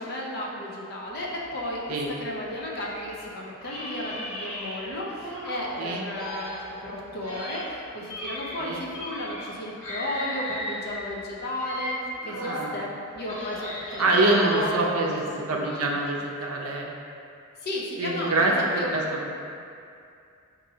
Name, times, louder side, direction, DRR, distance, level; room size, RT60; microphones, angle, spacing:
voice 1, 0.0-12.9 13.1-15.1 15.4-16.0 17.6-19.0, left 1 dB, 50° left, -4 dB, 0.6 m, -34 dB
sound 1, 1.1-3.2 3.6-5.8 6.1-9.6 9.8-12.7 13.1-14.8, left 1 dB, 90° left, 1.3 m, -37 dB
voice 2, 12.2-12.8 14.0-16.9 18.0-19.4, right 2 dB, 75° right, -1 dB, 0.5 m, -25 dB
5.2 x 2.6 x 2.7 m, 2.4 s
head